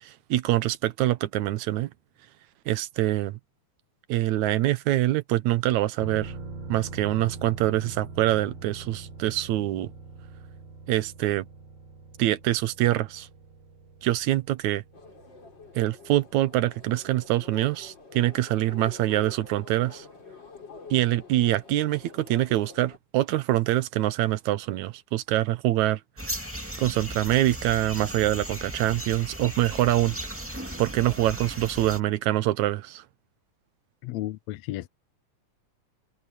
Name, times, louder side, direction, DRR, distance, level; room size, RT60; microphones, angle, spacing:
voice 1, 0.0-1.9 2.7-3.4 4.1-6.3 6.7-9.9 10.9-11.5 12.2-13.3 14.0-14.8 15.8-20.1 20.9-26.0 26.8-30.2 30.8-33.0, right 15 dB, 80° right, 2.2 m, -25 dB
sound 1, 6.0-17.5 17.9-18.0, right 3 dB, 55° right, 4.4 m, -43 dB
sound 2, 14.9-23.0, left 4 dB, 35° left, 4.9 m, -47 dB
sound 3, 26.2-32.0, right 1 dB, 5° right, 1.6 m, -36 dB
voice 2, 34.0-34.9, left 15 dB, 75° left, 1.9 m, -33 dB
omnidirectional pair, 3.4 m